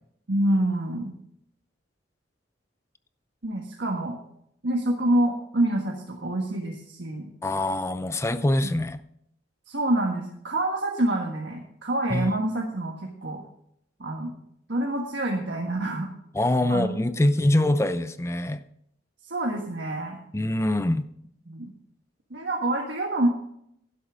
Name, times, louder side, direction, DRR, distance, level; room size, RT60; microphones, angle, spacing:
voice 1, 0.3-1.1 3.4-4.2 4.6-7.3 9.7-13.0 13.2-13.4 14.0-14.3 14.7-16.1 16.7-17.0 17.2-17.6 19.2-20.2 21.5-21.7 22.3-23.3, right 1 dB, 65° right, 0 dB, 1.5 m, -27 dB
voice 2, 7.4-9.0 12.1-12.3 16.3-18.6 20.3-21.0, left 1 dB, 15° left, 12 dB, 0.6 m, -24 dB
12.0 x 11.0 x 3.7 m, 0.72 s
head